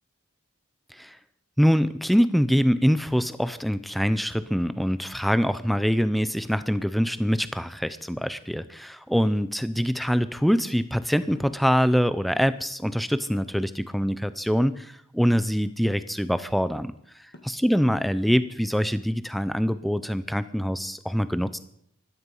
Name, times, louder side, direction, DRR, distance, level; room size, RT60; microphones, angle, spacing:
voice 1, 1.6-16.9 17.4-21.6, equal, ahead, 13 dB, 0.6 m, -24 dB
sound 1, 11.3-11.6 13.3-13.7 15.3-15.6 17.3-17.7, left 1 dB, 50° left, 1.9 m, -50 dB
15.5 x 13.0 x 5.5 m, 0.70 s
head